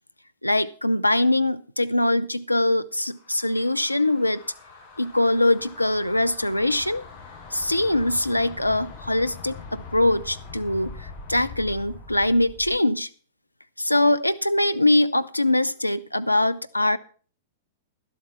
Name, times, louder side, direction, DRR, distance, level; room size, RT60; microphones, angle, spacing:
voice 1, 0.4-4.4 5.0-7.0 7.5-13.1 13.8-17.0, left 1 dB, 90° left, 0.5 m, -22 dB
sound 1, 3.1-12.8, left 4 dB, 35° left, 6.7 m, -42 dB
12.0 x 11.5 x 4.3 m
figure-of-eight pair, 100°, 0 cm